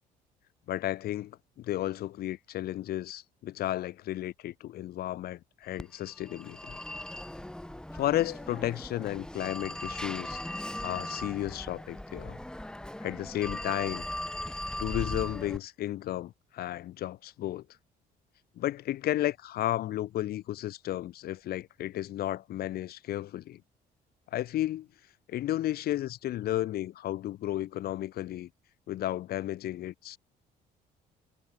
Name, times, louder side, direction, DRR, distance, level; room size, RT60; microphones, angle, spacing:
voice 1, 0.7-6.8 7.9-10.4 10.8-12.4 13.0-14.0 14.8-17.6 18.5-23.6 24.3-24.9 25.3-28.5 28.9-30.2, left 13 dB, 65° left, 1.6 m, -33 dB
Telephone, 5.8-15.6, left 1 dB, 5° left, 2.2 m, -39 dB
cardioid pair, 110°, 17 cm